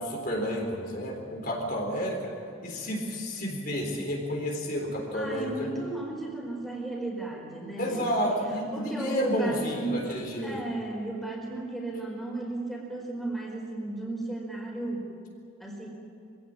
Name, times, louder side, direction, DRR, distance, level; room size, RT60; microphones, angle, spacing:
voice 1, 0.0-2.3 2.6-5.5 7.8-10.6, equal, 45° left, 0 dB, 3.9 m, -30 dB
voice 2, 5.1-8.2 8.5-10.0 10.4-15.1 15.6-15.9, right 2 dB, ahead, -2 dB, 4.7 m, -34 dB
25.0 x 17.0 x 8.8 m, 2.6 s
head